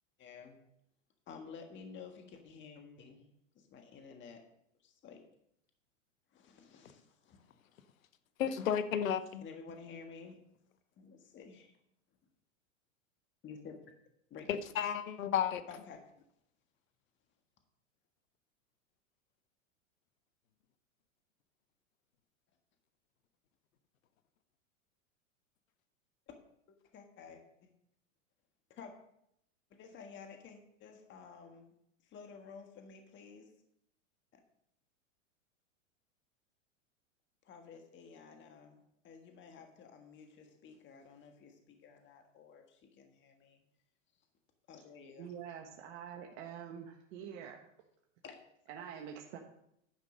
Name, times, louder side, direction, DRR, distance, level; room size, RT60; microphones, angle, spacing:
voice 1, 0.2-0.6 1.3-3.3 3.5-4.4 4.8-5.2 6.3-7.4 9.4-10.3 11.0-11.7 13.4-13.9 14.3-14.6 15.7-16.0 26.3-26.4 26.7-27.7 28.7-28.9 29.7-31.7 32.0-33.5 34.3-34.4 37.4-43.6 44.7-45.3 48.2-48.4, left 5 dB, 30° left, 1.5 m, -52 dB
voice 2, 8.4-9.4 14.5-15.6, left 8 dB, 90° left, 0.8 m, -32 dB
voice 3, 45.2-47.6 48.7-49.4, right 8 dB, 55° right, 1.4 m, -46 dB
10.5 x 5.3 x 6.5 m
hypercardioid pair, 115°, 39 cm